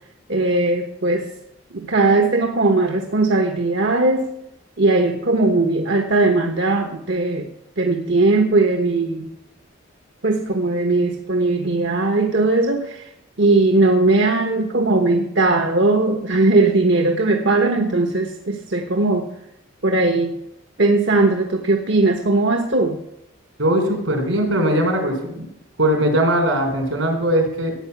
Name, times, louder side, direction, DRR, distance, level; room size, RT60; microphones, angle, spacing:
voice 1, 0.3-1.3 1.7-4.3 4.8-7.5 7.8-9.3 10.2-13.1 13.4-19.3 19.8-20.4 20.8-23.0, right 2 dB, 60° right, 4 dB, 1.2 m, -18 dB
voice 2, 23.6-25.5 25.8-27.8, right 1 dB, 80° right, 3 dB, 4.5 m, -20 dB
15.0 x 9.2 x 7.2 m, 0.85 s
head